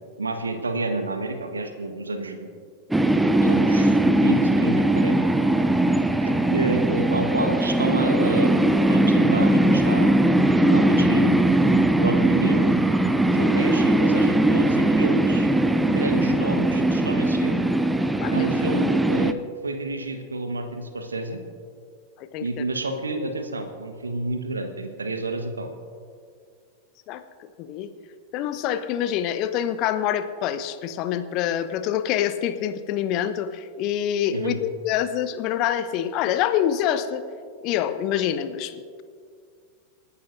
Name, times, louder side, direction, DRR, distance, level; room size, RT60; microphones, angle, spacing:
voice 1, 0.2-2.5 3.4-5.3 6.2-10.1 10.6-11.3 12.0-12.8 13.3-15.5 15.9-17.6 18.3-21.4 22.4-25.7 34.3-34.6, right 2 dB, 75° right, 7 dB, 1.3 m, -29 dB
sound 1, 2.9-19.3, right 1 dB, 5° right, 0.6 m, -20 dB
voice 2, 18.2-18.5 22.2-22.6 27.1-27.2 27.6-27.9 28.3-37.2 37.6-39.0, left 10 dB, 40° left, 11 dB, 0.8 m, -26 dB
28.5 x 11.5 x 2.6 m, 2.2 s
figure-of-eight pair, 90°, 0 cm